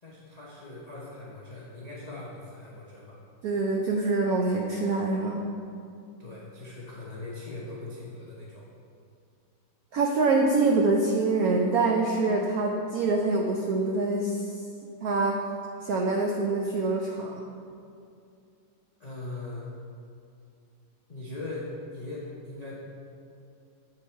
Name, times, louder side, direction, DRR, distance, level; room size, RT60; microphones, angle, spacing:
voice 1, 0.0-3.2 6.2-8.7 19.0-19.7 21.1-22.8, left 2 dB, 65° left, -7 dB, 0.3 m, -40 dB
voice 2, 3.4-5.4 9.9-14.5 15.0-15.4 15.8-17.3, right 3 dB, 80° right, 0 dB, 0.8 m, -25 dB
8.4 x 3.9 x 4.4 m, 2.5 s
omnidirectional pair, 2.2 m